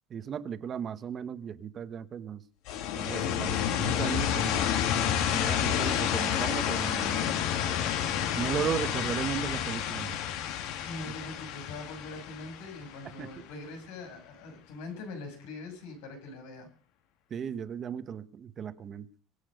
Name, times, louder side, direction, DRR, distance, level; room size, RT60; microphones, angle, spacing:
voice 1, 0.1-2.4 2.9-4.7 5.3-7.3 8.4-10.2 11.1-11.2 13.2-13.3 17.3-19.1, right 8 dB, 30° right, 1.0 m, -36 dB
sound 1, 2.7-13.4, left 9 dB, 60° left, 1.8 m, -30 dB
voice 2, 10.8-16.7, left 3 dB, 85° left, 6.9 m, -42 dB
24.0 x 8.5 x 6.5 m
cardioid pair, 155°, 0 cm